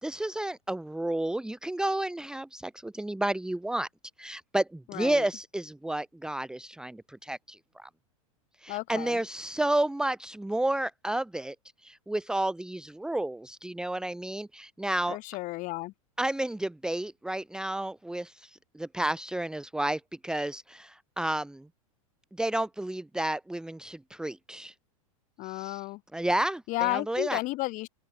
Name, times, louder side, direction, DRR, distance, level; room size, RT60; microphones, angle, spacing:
voice 1, 0.0-3.9 4.2-7.9 8.6-11.5 11.8-15.2 16.2-21.7 22.4-24.7 25.4-25.8 26.1-27.4, right 1 dB, 5° right, 1.3 m, -31 dB
voice 2, 4.9-5.3 8.7-9.2 15.1-15.9 25.4-26.0 26.7-27.9, left 20 dB, 45° left, 2.8 m, -32 dB
open air
hypercardioid pair, 105°, 18 cm